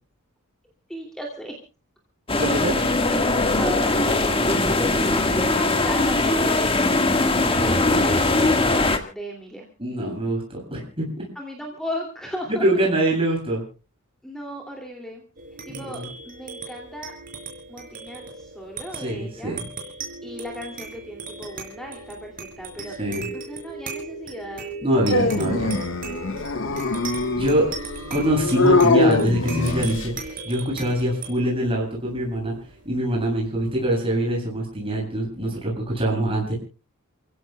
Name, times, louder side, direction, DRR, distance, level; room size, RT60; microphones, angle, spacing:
voice 1, 0.9-1.6 3.1-4.3 4.7-6.8 7.4-9.7 11.3-12.7 14.2-15.2 15.7-17.1 17.7-19.6 20.2-23.0 23.3-25.4 26.4-26.9, equal, ahead, 1 dB, 2.7 m, -36 dB
sound 1, 2.3-9.0, left 2 dB, 25° left, 1.7 m, -20 dB
voice 2, 2.4-2.8 9.8-11.3 12.6-13.6 15.7-16.1 18.9-19.6 23.0-23.3 24.8-25.7 27.3-27.7 28.1-32.5 32.8-36.5, right 1 dB, 25° right, -1 dB, 7.9 m, -24 dB
sound 2, 15.4-34.2, right 4 dB, 40° right, 4.9 m, -38 dB
Dog, 25.1-30.2, left 3 dB, 60° left, 1.6 m, -22 dB
29.5 x 16.0 x 2.3 m, 0.34 s
head